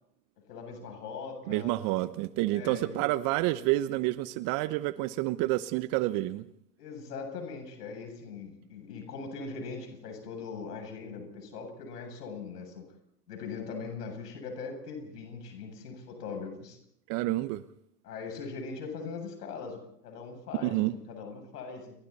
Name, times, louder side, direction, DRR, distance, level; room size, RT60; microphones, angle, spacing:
voice 1, 0.4-1.8 2.5-3.0 6.8-12.8 13.3-16.8 18.0-21.9, left 5 dB, 70° left, 5 dB, 8.0 m, -41 dB
voice 2, 1.5-6.5 17.1-17.6 20.6-20.9, right 17 dB, 40° right, 14 dB, 1.0 m, -29 dB
30.0 x 22.0 x 4.2 m, 0.71 s
hypercardioid pair, 110°, 49 cm